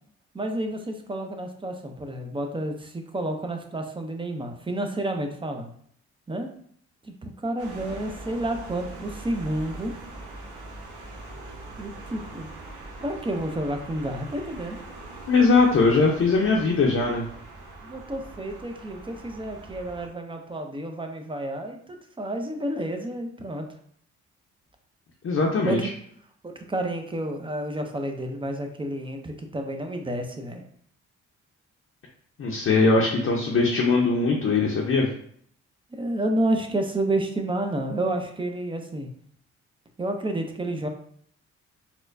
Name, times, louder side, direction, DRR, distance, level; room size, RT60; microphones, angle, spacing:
voice 1, 0.3-5.7 6.3-6.5 7.0-9.9 11.8-12.5 13.0-14.8 17.8-23.7 25.6-25.9 26.4-30.6 35.9-39.1 40.0-40.9, right 1 dB, 15° right, 4 dB, 0.5 m, -30 dB
sound 1, 7.6-20.1, right 2 dB, 90° right, 1.0 m, -42 dB
voice 2, 15.3-17.2 25.2-25.8 32.4-35.1, left 3 dB, 45° left, -2 dB, 0.7 m, -21 dB
4.2 x 2.2 x 2.5 m, 0.63 s
cardioid pair, 70°, 30 cm